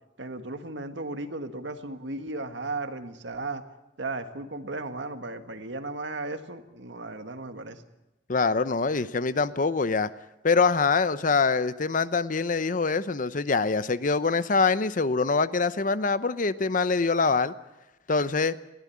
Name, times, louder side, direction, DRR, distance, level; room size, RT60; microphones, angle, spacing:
voice 1, 0.2-3.6 4.0-7.8, right 2 dB, 80° right, 8 dB, 1.7 m, -35 dB
voice 2, 8.3-10.1 10.4-17.5 18.1-18.5, left 4 dB, 45° left, 15 dB, 0.7 m, -24 dB
20.5 x 16.0 x 8.5 m, 0.99 s
head